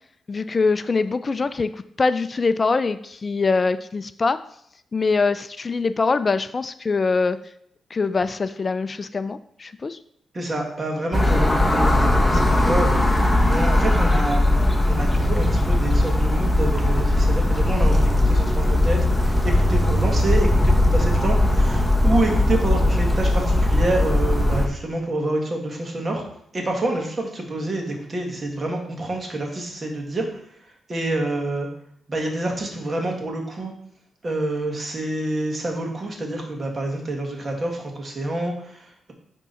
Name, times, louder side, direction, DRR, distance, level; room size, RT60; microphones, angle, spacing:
voice 1, 0.3-4.4 4.9-7.4 7.9-10.0, left 4 dB, 40° left, 12 dB, 0.3 m, -23 dB
voice 2, 10.3-13.0 13.5-14.4 14.8-26.2 26.5-31.7 32.1-33.7 34.2-39.1, right 2 dB, 40° right, 1 dB, 2.0 m, -27 dB
sound 1, 11.1-24.7, left 1 dB, 5° left, 1.1 m, -19 dB
9.8 x 3.6 x 4.1 m, 0.70 s
cardioid pair, 70°, 0 cm